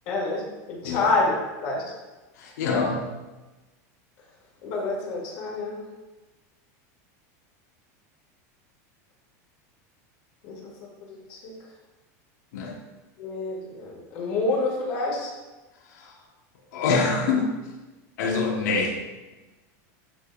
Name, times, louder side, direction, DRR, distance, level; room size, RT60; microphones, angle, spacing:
voice 1, 0.1-1.8 4.6-5.9 10.4-10.7 11.0-11.5 13.2-15.3, left 3 dB, 50° left, -3 dB, 2.3 m, -28 dB
voice 2, 0.8-1.1 2.4-3.0 12.5-12.7 15.9-16.1 16.7-17.5 18.2-19.0, left 4 dB, 75° left, 1 dB, 1.5 m, -25 dB
12.5 x 5.0 x 2.6 m, 1.1 s
supercardioid pair, 170°, 9 cm